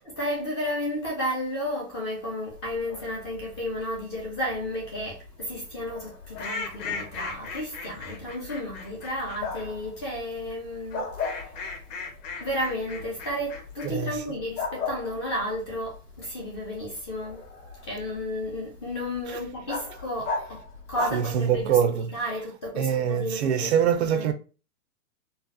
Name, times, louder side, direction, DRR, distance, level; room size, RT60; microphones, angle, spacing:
voice 1, 0.0-11.5 12.4-17.5 17.8-20.6 20.9-21.8 22.1-24.3, left 1 dB, 20° left, 0.4 m, -32 dB
Bark, 2.5-21.9, left 4 dB, 85° left, 1.6 m, -39 dB
sound 1, 6.3-9.7 10.9-13.9, left 5 dB, 55° left, 1.1 m, -37 dB
voice 2, 21.1-22.1 22.8-24.3, right 8 dB, 50° right, 0.5 m, -24 dB
4.0 x 2.0 x 2.5 m
hypercardioid pair, 150°, 46 cm